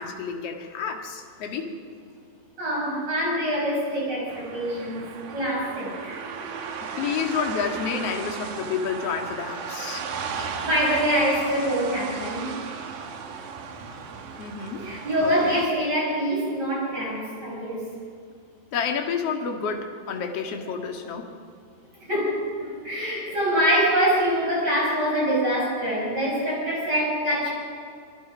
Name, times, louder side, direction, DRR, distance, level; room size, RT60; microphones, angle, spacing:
voice 1, 0.0-1.7 6.8-10.0 10.4-10.5 14.4-14.9 15.2-15.6 18.7-21.3, left 6 dB, 45° left, 3 dB, 2.6 m, -30 dB
voice 2, 2.6-6.2 6.6-6.7 10.3-12.5 14.7-17.9 21.9-27.5, equal, 25° right, -4 dB, 7.4 m, -25 dB
sound 1, 4.3-15.7, right 6 dB, 60° right, 2.7 m, -35 dB
27.0 x 21.5 x 5.2 m, 2.3 s
omnidirectional pair, 4.4 m